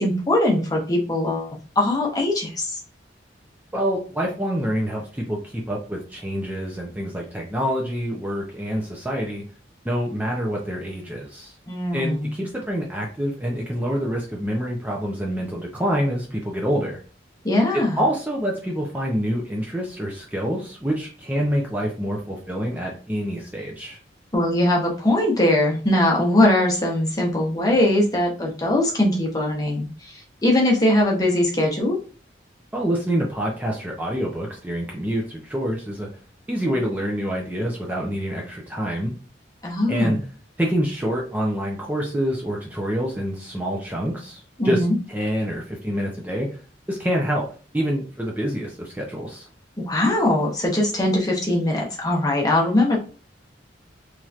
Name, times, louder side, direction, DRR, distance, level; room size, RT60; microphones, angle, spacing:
voice 1, 0.0-1.5 1.8-2.8 11.7-12.4 17.4-18.0 24.3-32.0 39.6-40.3 44.6-44.9 49.8-53.0, left 1 dB, 20° left, -1 dB, 0.8 m, -21 dB
voice 2, 3.7-9.5 9.8-11.5 11.9-17.0 17.7-24.0 32.7-36.1 36.5-39.1 39.9-40.2 40.6-44.8 45.1-46.5 46.9-47.5 47.7-49.5, equal, 10° right, -2 dB, 0.5 m, -26 dB
3.1 x 2.9 x 2.4 m, 0.38 s
head